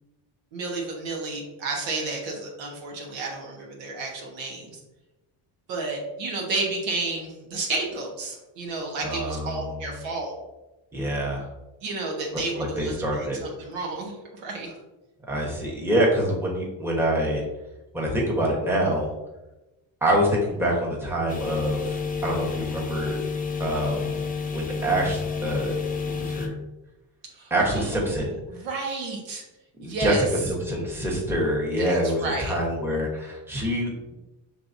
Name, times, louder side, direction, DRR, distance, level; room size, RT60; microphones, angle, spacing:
voice 1, 0.5-4.8 5.7-10.3 11.8-14.7 27.3-29.4 29.8-30.2 31.8-32.5, right 3 dB, 85° right, -1 dB, 1.3 m, -32 dB
voice 2, 9.0-9.8 10.9-11.5 12.6-13.4 15.3-17.4 17.9-19.1 20.0-23.2 23.6-24.3 24.5-25.7 26.1-26.5 27.5-28.3 29.8-34.1, equal, 5° right, -3 dB, 1.1 m, -26 dB
sound 1, 21.3-26.5, left 5 dB, 20° left, 0.5 m, -30 dB
5.7 x 3.3 x 2.6 m, 1.0 s
cardioid pair, 125°, 44 cm